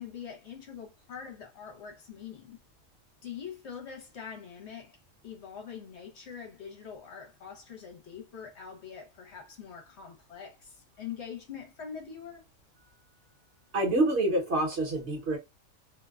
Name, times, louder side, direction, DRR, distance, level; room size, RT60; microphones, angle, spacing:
voice 1, 0.0-2.6 3.2-5.0 5.2-12.5, left 7 dB, 60° left, 0.9 m, -44 dB
voice 2, 13.7-15.4, right 2 dB, 60° right, 1.1 m, -27 dB
2.6 x 2.1 x 2.3 m
omnidirectional pair, 1.4 m